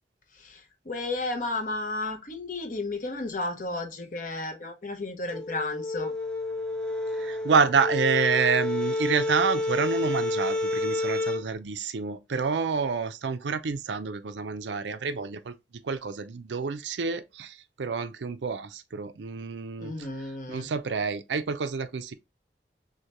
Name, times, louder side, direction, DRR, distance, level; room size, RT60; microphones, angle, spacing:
voice 1, 0.3-6.1 19.8-20.7, left 2 dB, 45° left, 0.8 m, -33 dB
sound 1, 5.3-11.4, left 2 dB, 5° left, 0.4 m, -29 dB
voice 2, 7.2-15.6 15.8-19.9 20.5-22.1, right 5 dB, 85° right, 0.5 m, -28 dB
6.3 x 2.2 x 2.9 m
head